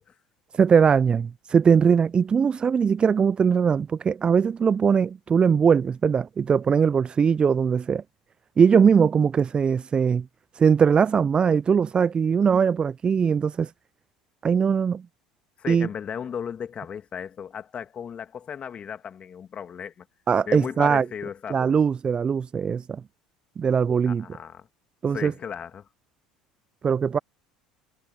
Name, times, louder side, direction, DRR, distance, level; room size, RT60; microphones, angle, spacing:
voice 1, 0.5-8.0 8.6-10.3 10.5-13.7 14.4-15.0 15.7-15.9 20.3-21.1 21.5-23.0 23.6-24.3 25.0-25.3 26.8-27.2, right 6 dB, 30° right, 0.5 m, -21 dB
voice 2, 15.6-20.1 20.5-21.7 24.1-24.7 25.1-25.9, left 7 dB, 35° left, 2.2 m, -35 dB
figure-of-eight pair, 65°, 3 cm